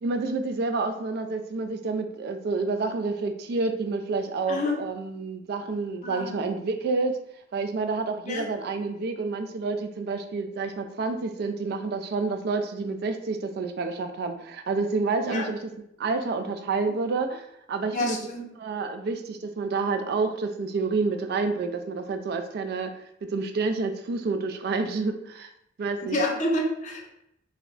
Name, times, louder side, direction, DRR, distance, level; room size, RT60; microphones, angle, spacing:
voice 1, 0.0-7.2 7.5-15.7 16.0-18.2 18.6-22.9 23.2-25.5 25.8-26.2, right 3 dB, 60° right, 7 dB, 0.3 m, -29 dB
voice 2, 4.5-4.8 6.0-6.4 8.2-8.5 15.2-15.4 17.9-18.5 26.0-27.1, left 1 dB, 40° left, 0 dB, 0.6 m, -28 dB
2.3 x 2.1 x 3.7 m, 0.78 s
head